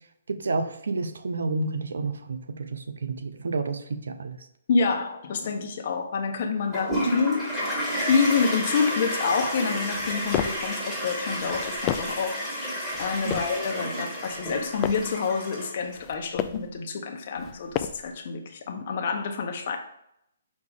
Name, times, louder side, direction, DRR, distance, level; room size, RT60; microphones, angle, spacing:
voice 1, 0.3-4.5 13.2-13.5, right 3 dB, 80° right, 10 dB, 0.7 m, -30 dB
voice 2, 4.7-12.6 13.0-19.8, left 5 dB, 50° left, 4 dB, 1.0 m, -27 dB
Toilet flush, 6.7-15.9, equal, 5° right, 2.2 m, -31 dB
sound 1, 9.9-10.7 11.4-12.3 12.9-13.6 14.3-15.2 15.9-16.7 17.4-18.2, left 11 dB, 25° left, 0.3 m, -33 dB
6.1 x 4.3 x 3.6 m, 0.77 s
hypercardioid pair, 150°, 0 cm